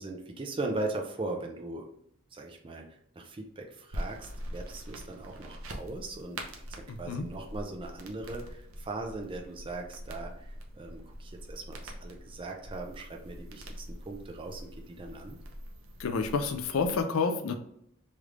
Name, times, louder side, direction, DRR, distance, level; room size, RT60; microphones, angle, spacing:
voice 1, 0.0-1.9 2.3-2.8 3.2-15.4, right 2 dB, 25° right, 2 dB, 0.4 m, -39 dB
sound 1, 3.9-17.0, equal, 75° right, 0.7 m, -44 dB
voice 2, 6.9-7.3 16.0-17.5, left 4 dB, 70° left, 7 dB, 0.4 m, -29 dB
3.2 x 3.1 x 2.5 m, 0.72 s
head